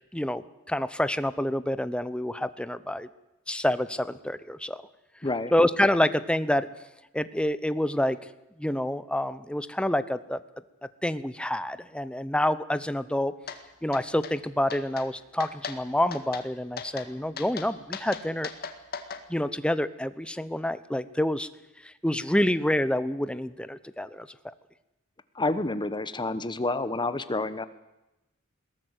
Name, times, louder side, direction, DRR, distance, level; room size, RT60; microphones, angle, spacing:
voice 1, 0.1-3.1 3.5-4.8 5.5-6.7 7.1-8.2 8.6-10.4 11.0-13.3 13.8-18.5 19.3-21.5 21.8-24.3, left 1 dB, 5° left, 14 dB, 0.8 m, -27 dB
voice 2, 5.2-5.5 25.4-27.7, left 2 dB, 20° left, 13 dB, 1.1 m, -29 dB
sound 1, 13.5-13.6 13.9-14.3 14.7-15.1 15.4-15.8 16.1-16.5 16.8-17.1 17.4-19.2, left 6 dB, 50° left, 2.0 m, -37 dB
21.0 x 17.5 x 8.2 m, 0.97 s
head